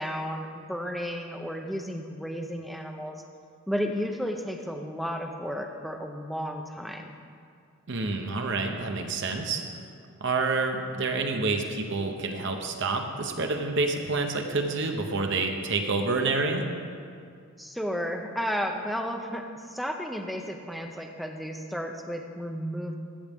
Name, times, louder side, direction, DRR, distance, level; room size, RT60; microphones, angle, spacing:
voice 1, 0.0-3.2 3.7-7.1 17.6-22.9, equal, ahead, 2 dB, 0.5 m, -33 dB
voice 2, 7.9-9.6 10.2-16.6, right 3 dB, 55° right, 4 dB, 0.7 m, -28 dB
14.0 x 6.2 x 3.5 m, 2.3 s
head